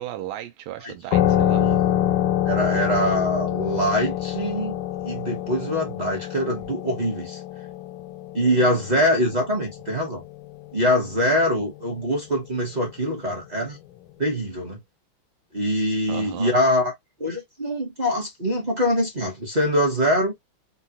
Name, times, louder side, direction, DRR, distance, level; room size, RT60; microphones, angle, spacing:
voice 1, 0.0-1.7 16.1-16.5, right 12 dB, 90° right, 1.4 m, -35 dB
sound 1, 1.1-10.3, left 12 dB, 85° left, 1.5 m, -25 dB
voice 2, 2.5-7.4 8.3-10.2 10.7-13.8 14.2-14.8 15.5-16.9 17.2-20.3, equal, 35° right, 0.6 m, -23 dB
3.8 x 2.2 x 2.7 m
omnidirectional pair, 2.3 m